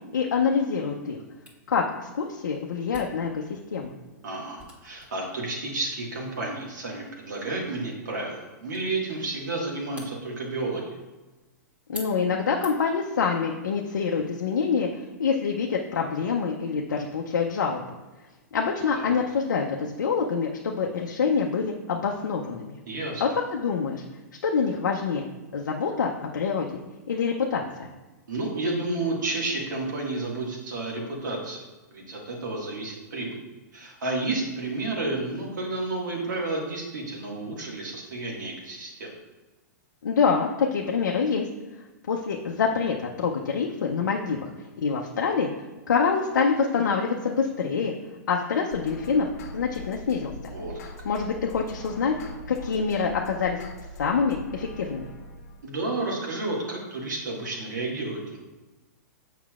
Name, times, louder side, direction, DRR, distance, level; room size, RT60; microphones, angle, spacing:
voice 1, 0.1-1.2 1.7-3.9 11.9-17.8 18.5-22.8 23.2-24.0 24.4-25.2 25.5-27.9 40.0-41.5 42.1-45.5 45.9-47.9 48.3-49.3 49.5-50.3 51.0-52.2 52.5-53.6 54.0-55.1, left 5 dB, 85° left, 0 dB, 0.6 m, -26 dB
Camera, 1.5-13.1, equal, 15° right, 1.4 m, -50 dB
voice 2, 4.2-10.8 18.9-19.1 22.9-23.2 28.3-31.6 31.9-33.4 33.7-39.1 50.5-50.9 55.6-58.4, right 2 dB, 80° right, -2 dB, 1.8 m, -31 dB
sound 1, 48.7-55.7, left 1 dB, 55° left, 1.0 m, -41 dB
7.3 x 5.6 x 2.4 m, 1.1 s
hypercardioid pair, 120°, 10 cm